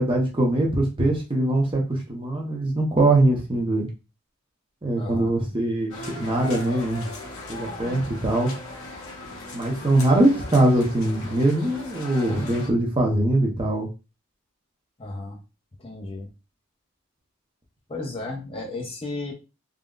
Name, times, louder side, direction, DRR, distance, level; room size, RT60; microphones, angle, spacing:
voice 1, 0.0-3.9 4.8-7.1 7.5-8.5 9.5-13.9, right 1 dB, 25° right, 0 dB, 0.6 m, -22 dB
voice 2, 5.0-5.3 15.0-15.4 15.8-16.3 17.9-19.3, left 2 dB, 25° left, 0 dB, 0.6 m, -33 dB
sound 1, 5.9-12.7, left 2 dB, 80° left, 0.9 m, -38 dB
3.6 x 2.0 x 2.4 m, 0.29 s
head